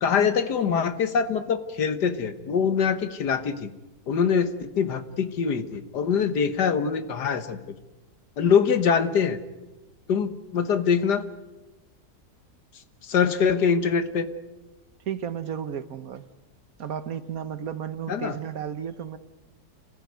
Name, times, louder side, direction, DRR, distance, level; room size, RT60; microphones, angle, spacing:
voice 1, 0.0-3.7 4.1-7.6 8.4-9.4 10.1-11.2 13.0-14.3 18.1-18.3, left 6 dB, 75° left, 11 dB, 1.8 m, -24 dB
voice 2, 15.1-16.3 16.8-19.2, right 8 dB, 60° right, 13 dB, 1.4 m, -33 dB
27.5 x 15.5 x 9.5 m, 1.1 s
omnidirectional pair, 1.8 m